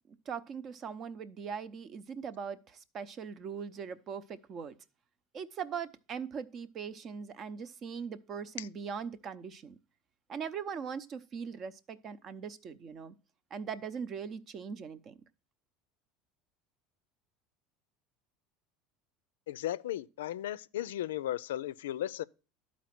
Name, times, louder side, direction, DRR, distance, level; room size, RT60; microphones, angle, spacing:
voice 1, 0.3-4.7 5.3-9.8 10.3-13.2 13.5-15.2, right 6 dB, 45° right, 0.8 m, -40 dB
voice 2, 19.5-22.2, left 12 dB, 85° left, 0.4 m, -35 dB
12.0 x 4.2 x 5.9 m
hypercardioid pair, 85°, 0 cm